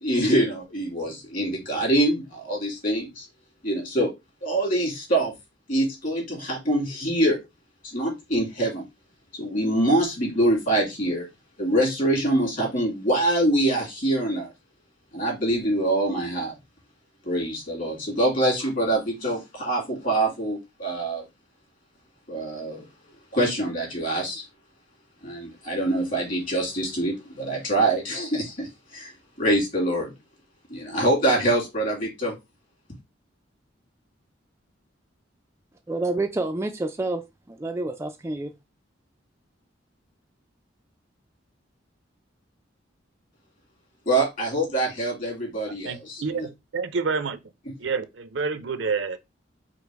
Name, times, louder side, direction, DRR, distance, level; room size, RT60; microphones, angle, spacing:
voice 1, 0.0-3.3 3.6-4.1 4.4-5.3 5.7-7.4 7.8-8.8 9.4-11.3 11.6-14.5 15.1-16.5 17.3-21.2 22.3-22.9 23.3-24.4 25.2-29.1 29.4-30.1 30.7-32.4 44.1-46.4, right 1 dB, 45° left, 2.6 m, -24 dB
voice 2, 35.9-38.5, right 2 dB, 15° right, 0.3 m, -28 dB
voice 3, 45.8-47.4 47.8-49.2, right 4 dB, 70° right, 0.5 m, -28 dB
5.0 x 2.0 x 4.6 m
head